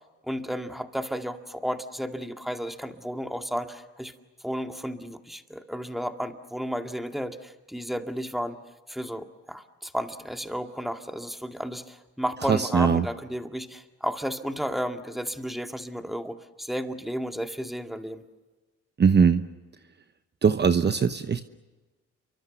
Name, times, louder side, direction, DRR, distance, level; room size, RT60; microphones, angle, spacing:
voice 1, 0.2-4.1 4.4-8.6 8.9-18.2, equal, ahead, 6 dB, 2.1 m, -33 dB
voice 2, 12.5-13.1 19.0-19.4 20.4-21.4, right 6 dB, 35° right, 10 dB, 1.0 m, -20 dB
29.5 x 24.0 x 7.1 m, 1.2 s
cardioid pair, 90°, 30 cm